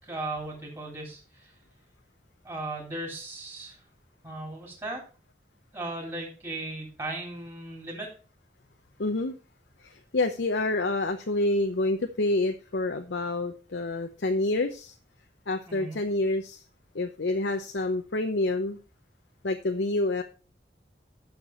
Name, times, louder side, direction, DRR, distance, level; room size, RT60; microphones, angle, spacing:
voice 1, 0.0-1.5 2.4-3.8 4.2-5.0 5.7-8.1 15.7-16.0, right 2 dB, 20° right, -2 dB, 3.0 m, -37 dB
voice 2, 9.0-9.4 9.8-14.9 15.5-16.6 16.9-18.8 19.4-20.2, left 2 dB, 85° left, 6 dB, 0.8 m, -28 dB
11.5 x 6.7 x 4.4 m, 0.36 s
head